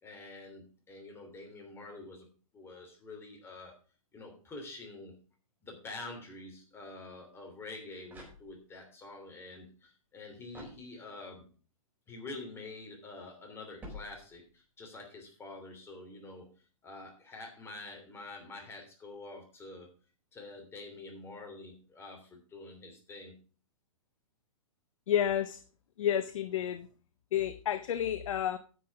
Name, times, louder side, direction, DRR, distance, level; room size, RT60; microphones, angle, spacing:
voice 1, 0.0-2.3 2.5-3.8 4.1-5.1 5.6-11.4 12.1-16.5 16.8-19.9 20.3-23.3, left 2 dB, 15° left, 2 dB, 3.1 m, -47 dB
sound 1, 8.1-8.9 10.5-11.4 13.8-14.7, left 1 dB, 10° right, 4.3 m, -50 dB
voice 2, 25.1-25.6 26.0-26.9 27.3-28.6, left 10 dB, 65° left, 11 dB, 0.8 m, -30 dB
10.0 x 6.3 x 5.9 m, 0.38 s
hypercardioid pair, 140°, 18 cm